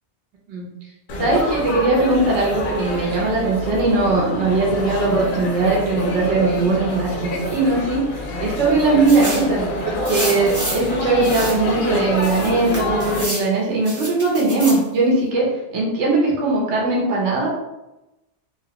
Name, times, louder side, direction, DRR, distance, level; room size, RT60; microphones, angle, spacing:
Laughter / Chatter / Crowd, 1.1-13.2, left 1 dB, 55° left, 0.6 m, -27 dB
voice 1, 1.2-8.0 8.4-17.5, right 3 dB, 75° right, -3 dB, 1.1 m, -20 dB
sound 1, 9.1-9.5 10.1-10.9 11.2-11.6 12.2-13.5 13.9-14.8, right 1 dB, 25° right, 0.4 m, -29 dB
3.0 x 2.7 x 2.8 m, 0.96 s
omnidirectional pair, 1.2 m